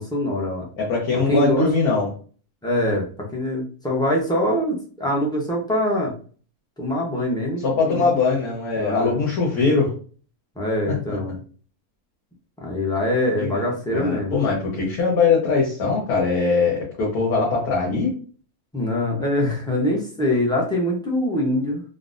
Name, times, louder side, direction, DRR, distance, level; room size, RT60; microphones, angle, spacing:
voice 1, 0.0-0.7 1.3-1.7 2.6-6.1 6.8-8.1 8.8-9.2 10.6-11.4 12.6-14.3 18.7-21.8, left 1 dB, 5° left, -2 dB, 0.3 m, -24 dB
voice 2, 0.8-2.1 7.6-9.9 10.9-11.2 13.4-18.1, left 4 dB, 75° left, -4 dB, 1.4 m, -21 dB
3.8 x 2.1 x 2.5 m, 0.40 s
omnidirectional pair, 1.6 m